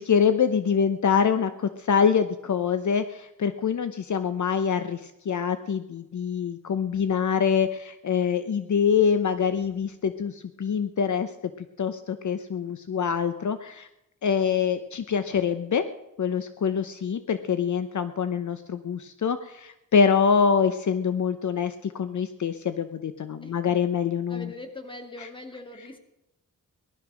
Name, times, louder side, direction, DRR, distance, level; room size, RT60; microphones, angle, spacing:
voice 1, 0.0-11.3 11.8-13.9 14.2-15.8 16.2-24.5, left 6 dB, 60° left, 10 dB, 0.9 m, -25 dB
voice 2, 24.3-26.0, left 2 dB, 15° left, 5 dB, 2.4 m, -41 dB
18.5 x 12.5 x 6.3 m, 0.90 s
wide cardioid pair, 125°, 33 cm